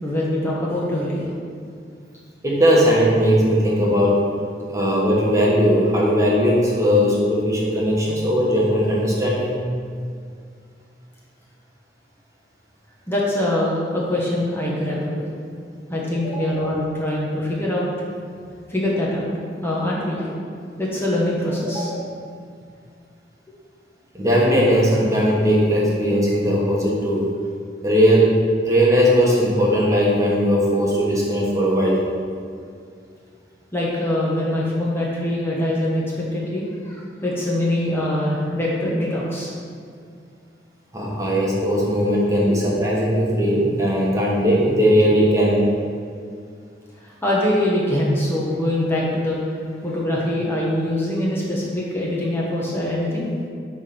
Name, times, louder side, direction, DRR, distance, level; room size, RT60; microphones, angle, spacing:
voice 1, 0.0-1.3 13.1-15.3 15.9-17.9 18.7-19.3 19.6-20.4 20.8-21.9 33.7-39.5 47.0-49.4 49.8-53.3, left 1 dB, 15° left, -5 dB, 1.1 m, -23 dB
voice 2, 2.4-4.3 4.7-9.6 16.2-16.4 21.7-22.0 24.1-27.3 27.8-28.4 28.6-32.1 40.9-45.7, equal, 20° right, -4 dB, 1.4 m, -18 dB
8.9 x 3.5 x 5.9 m, 2.2 s
head